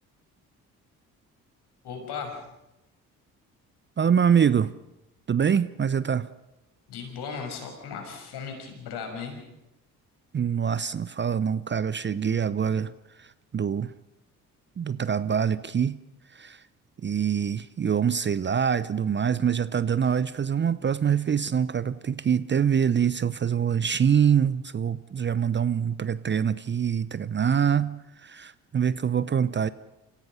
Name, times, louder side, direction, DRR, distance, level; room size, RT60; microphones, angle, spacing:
voice 1, 1.8-2.4 6.9-9.4, left 6 dB, 65° left, 4 dB, 6.0 m, -36 dB
voice 2, 4.0-4.7 5.3-6.3 10.3-12.9 13.2-13.9 14.8-16.0 16.3-16.6 17.0-29.7, right 7 dB, 25° right, 17 dB, 0.7 m, -25 dB
29.5 x 16.5 x 5.7 m, 0.91 s
hypercardioid pair, 50°, 43 cm